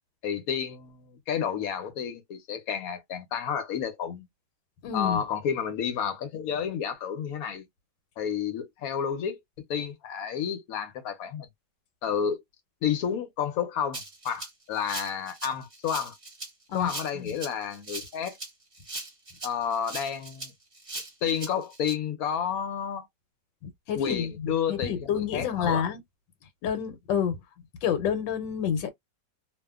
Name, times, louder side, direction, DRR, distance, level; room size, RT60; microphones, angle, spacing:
voice 1, 0.2-4.3 4.9-7.6 8.2-9.4 9.7-11.5 12.0-12.4 12.8-16.2 16.7-18.4 19.4-20.5 21.2-23.1 23.9-25.9, left 8 dB, 65° left, 1.0 m, -31 dB
voice 2, 4.8-5.2 16.7-16.9 23.9-26.0 26.6-27.4 27.8-28.9, left 8 dB, 80° left, 1.3 m, -28 dB
Rattle (instrument), 13.9-21.9, right 2 dB, 25° right, 0.9 m, -40 dB
2.7 x 2.4 x 2.3 m
omnidirectional pair, 2.0 m